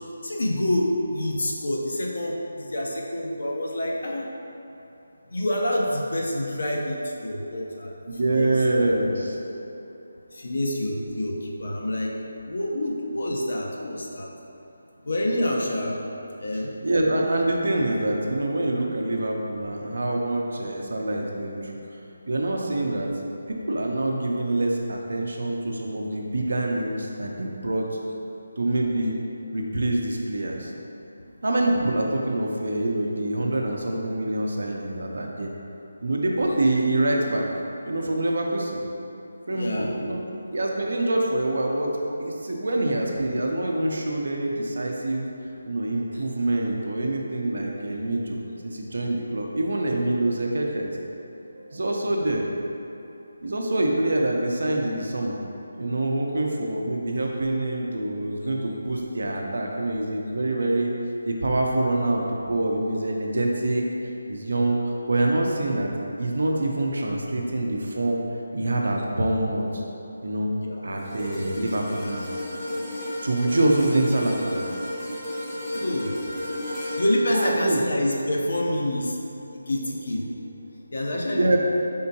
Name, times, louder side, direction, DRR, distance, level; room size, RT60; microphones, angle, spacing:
voice 1, 0.2-4.3 5.3-7.9 8.3-8.5 9.4-9.6 10.3-12.1 12.5-14.3 15.0-16.0 16.4-16.7 39.5-39.9 46.1-46.2 70.6-70.8 75.7-76.2 77.0-79.2 79.7-80.3 80.9-81.6, left 1 dB, 70° left, -2 dB, 0.6 m, -27 dB
voice 2, 8.2-9.4 16.8-21.7 22.3-23.1 23.5-27.9 28.6-29.1 29.5-30.7 31.4-35.5 36.0-37.5 37.8-38.8 39.5-40.2 40.5-41.9 42.2-45.3 45.7-48.4 48.6-50.9 51.6-52.5 53.4-55.4 55.8-60.9 61.3-63.8 64.3-65.9 66.2-68.2 68.5-69.8 70.2-70.5 70.8-72.2 73.2-74.6 77.3-77.8 81.3-81.6, right 1 dB, 70° right, 0 dB, 0.6 m, -25 dB
sound 1, 71.0-79.3 79.8-80.0, left 1 dB, 5° left, 0.7 m, -34 dB
4.3 x 3.6 x 2.7 m, 2.8 s
figure-of-eight pair, 165°, 0 cm